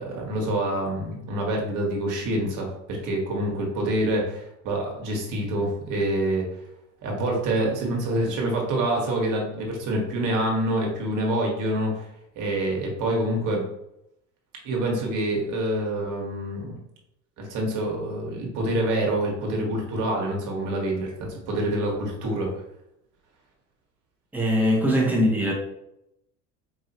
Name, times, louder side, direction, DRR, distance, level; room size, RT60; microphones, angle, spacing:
voice 1, 0.0-6.5 7.0-12.1 12.3-13.6 14.6-16.8 17.4-22.5, right 1 dB, 55° right, -1 dB, 1.5 m, -26 dB
voice 2, 24.3-25.5, equal, 5° right, -2 dB, 1.2 m, -21 dB
4.9 x 2.7 x 2.9 m, 0.81 s
hypercardioid pair, 75°, 37 cm